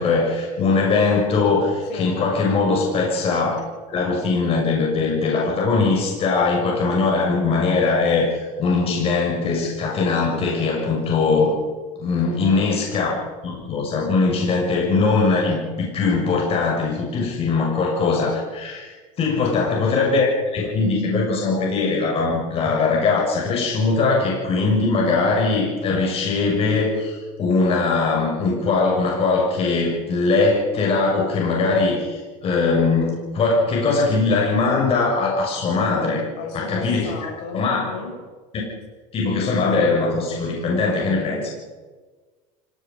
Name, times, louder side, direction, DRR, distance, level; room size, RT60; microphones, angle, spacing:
voice 1, 0.0-3.6 3.9-8.3 8.6-11.5 12.0-13.1 13.4-20.3 20.5-36.2 36.5-37.1 37.5-37.8 38.5-38.6 39.1-41.5, left 4 dB, 35° left, -2 dB, 6.9 m, -21 dB
voice 2, 1.9-2.2 12.2-12.8 19.5-20.1 36.4-38.2, left 5 dB, 60° left, 1 dB, 7.8 m, -35 dB
27.0 x 18.0 x 5.6 m, 1.3 s
supercardioid pair, 125°, 17 cm